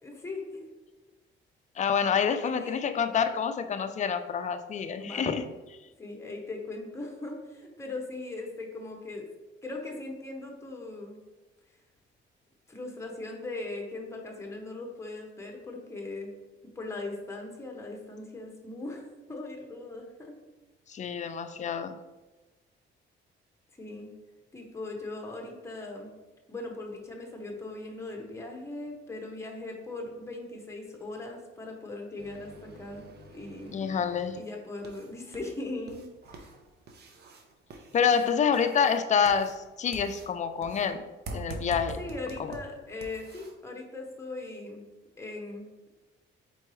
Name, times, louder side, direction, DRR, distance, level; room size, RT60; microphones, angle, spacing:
voice 1, 0.0-0.6 2.4-2.9 5.0-5.3 6.0-9.3 9.6-11.2 12.7-16.3 16.7-19.0 19.3-20.4 23.8-24.1 24.5-26.1 26.5-33.8 34.4-36.5 42.0-44.9 45.2-45.9, left 2 dB, 15° left, 1 dB, 0.9 m, -39 dB
voice 2, 1.8-5.4 20.9-22.0 33.7-34.4 37.9-41.0 41.3-42.0, left 6 dB, 35° left, 9 dB, 0.4 m, -27 dB
sound 1, 32.2-43.5, right 2 dB, 55° right, 0.7 m, -46 dB
4.4 x 3.8 x 3.1 m, 1.1 s
cardioid pair, 90°, 20 cm